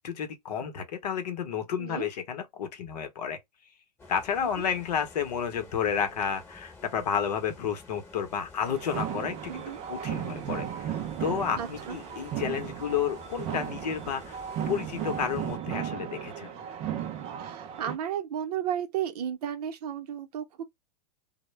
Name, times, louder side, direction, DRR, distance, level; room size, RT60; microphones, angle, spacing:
voice 1, 0.0-3.4 4.1-16.5, left 8 dB, 75° left, 0.8 m, -31 dB
sound 1, 4.0-15.6, left 3 dB, 10° left, 0.9 m, -50 dB
sound 2, 8.6-18.0, right 9 dB, 30° right, 0.4 m, -35 dB
voice 2, 9.5-9.8 11.6-12.0 17.4-20.6, right 9 dB, 70° right, 0.7 m, -34 dB
2.1 x 2.0 x 3.1 m
hypercardioid pair, 125°, 21 cm